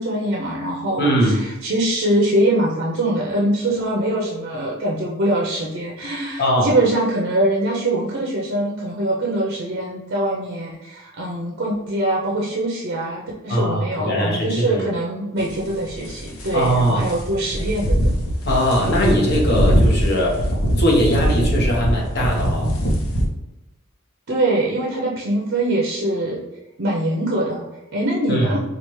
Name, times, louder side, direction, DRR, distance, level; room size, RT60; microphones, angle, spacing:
voice 1, 0.0-18.1 24.3-26.4 26.8-27.7 27.9-28.6, right 1 dB, 50° right, -3 dB, 0.6 m, -23 dB
voice 2, 1.0-1.4 6.4-6.7 13.5-14.8 16.5-17.1 18.4-20.4 20.8-22.7 28.3-28.5, equal, 50° left, -2 dB, 1.0 m, -20 dB
sound 1, 15.4-23.2, equal, 90° left, 0.8 m, -22 dB
4.7 x 2.4 x 3.1 m, 1.0 s
head